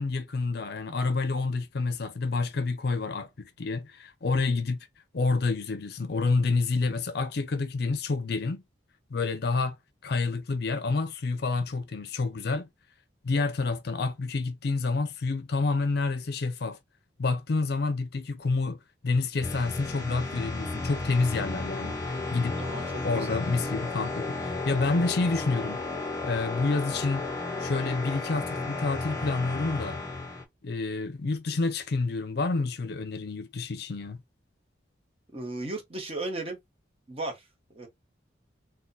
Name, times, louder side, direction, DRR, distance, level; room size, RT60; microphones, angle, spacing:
voice 1, 0.0-4.9 5.1-8.6 9.1-9.8 10.0-12.7 13.2-16.8 17.2-18.8 19.0-22.6 23.0-25.8 26.2-27.3 27.6-30.0 30.6-34.2, left 3 dB, 55° left, 0.5 m, -28 dB
sound 1, 19.4-30.4, left 3 dB, 20° left, 0.7 m, -33 dB
voice 2, 35.3-36.6 37.1-37.9, right 2 dB, 30° right, 0.9 m, -36 dB
4.1 x 2.2 x 2.5 m
head